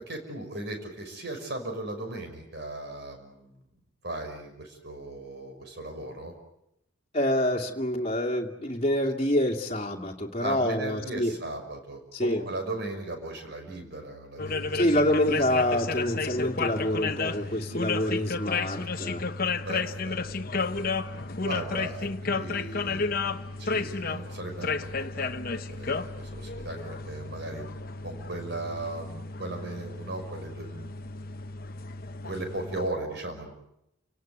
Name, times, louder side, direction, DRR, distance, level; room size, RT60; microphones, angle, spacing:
voice 1, 0.0-3.7 4.0-6.3 10.4-15.0 16.7-17.5 18.0-18.2 19.7-20.2 20.5-20.8 21.4-27.7 28.0-30.9 32.2-33.5, right 2 dB, 50° right, 5 dB, 5.7 m, -37 dB
voice 2, 7.1-11.3 12.1-12.4 14.7-19.3, left 1 dB, 30° left, -1 dB, 2.4 m, -27 dB
sound 1, 14.4-32.9, left 4 dB, 45° left, 1.0 m, -32 dB
30.0 x 18.0 x 9.4 m, 0.84 s
head